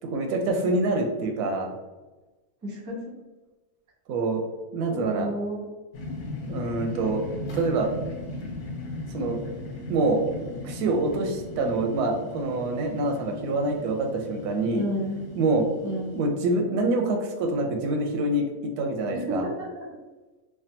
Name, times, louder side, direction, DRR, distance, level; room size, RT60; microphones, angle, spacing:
voice 1, 0.0-1.7 4.1-4.4 4.7-5.3 6.5-7.3 7.5-7.9 9.1-9.4 9.9-10.2 10.6-14.9 15.3-15.7 16.1-18.4 18.8-19.5, right 2 dB, 85° right, 3 dB, 1.1 m, -26 dB
voice 2, 2.6-3.0 5.0-5.7 14.7-15.2 15.8-16.2 19.3-19.9, equal, 20° right, -4 dB, 0.5 m, -31 dB
sound 1, 5.9-16.3, left 2 dB, 90° left, 1.2 m, -37 dB
3.3 x 2.1 x 2.7 m, 1.2 s
omnidirectional pair, 1.6 m